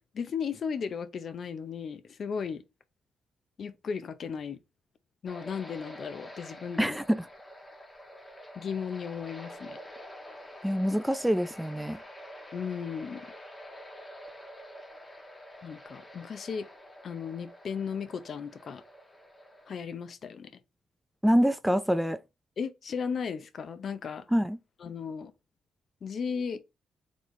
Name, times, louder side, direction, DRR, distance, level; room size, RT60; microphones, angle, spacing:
voice 1, 0.1-2.6 3.6-4.6 5.2-7.0 8.6-9.8 12.5-13.2 15.6-16.7 17.0-18.8 19.7-20.5 22.6-24.3 24.8-25.3 26.0-26.6, left 6 dB, 55° left, 0.5 m, -35 dB
sound 1, 5.3-19.8, equal, 20° left, 1.2 m, -48 dB
voice 2, 6.8-7.3 10.6-12.0 21.2-22.2 24.3-24.6, equal, 5° right, 0.3 m, -25 dB
4.1 x 3.1 x 3.1 m
cardioid pair, 85°, 0 cm